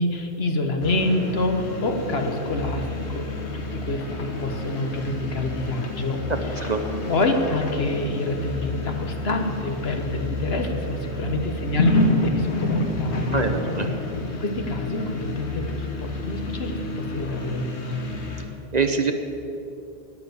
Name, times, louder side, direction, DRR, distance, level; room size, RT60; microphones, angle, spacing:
voice 1, 0.0-6.2 7.1-13.5 14.4-18.1, left 2 dB, 65° left, 5 dB, 1.5 m, -27 dB
sound 1, 0.8-18.4, left 2 dB, 85° left, 1.7 m, -29 dB
voice 2, 6.3-6.8 13.3-13.9 18.7-19.1, right 4 dB, 40° right, 6 dB, 1.0 m, -24 dB
12.0 x 10.5 x 8.0 m, 2.9 s
omnidirectional pair, 1.1 m